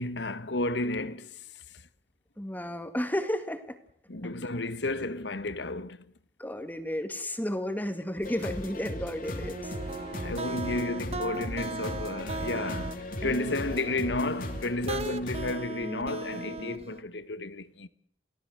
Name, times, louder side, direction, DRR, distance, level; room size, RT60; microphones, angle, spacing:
voice 1, 0.0-1.5 4.1-6.0 10.2-17.9, left 2 dB, 70° left, 1.4 m, -32 dB
voice 2, 2.4-3.8 6.4-9.7, left 1 dB, 10° left, 2.1 m, -32 dB
sound 1, 8.2-15.6, left 1 dB, 50° left, 2.7 m, -38 dB
sound 2, 9.4-17.0, right 2 dB, 35° right, 1.1 m, -38 dB
28.5 x 18.0 x 7.8 m
head